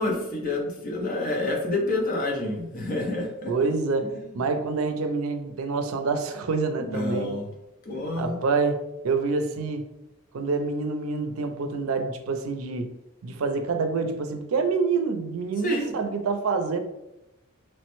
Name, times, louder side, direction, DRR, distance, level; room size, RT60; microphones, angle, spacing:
voice 1, 0.0-3.5 6.9-7.4 7.8-8.4 15.6-15.9, left 2 dB, 40° left, 0 dB, 0.6 m, -28 dB
voice 2, 3.5-7.3 8.2-8.8 9.0-9.8 10.3-12.9 13.2-16.8, right 4 dB, 85° right, 6 dB, 0.4 m, -27 dB
3.1 x 2.1 x 3.0 m, 0.91 s
head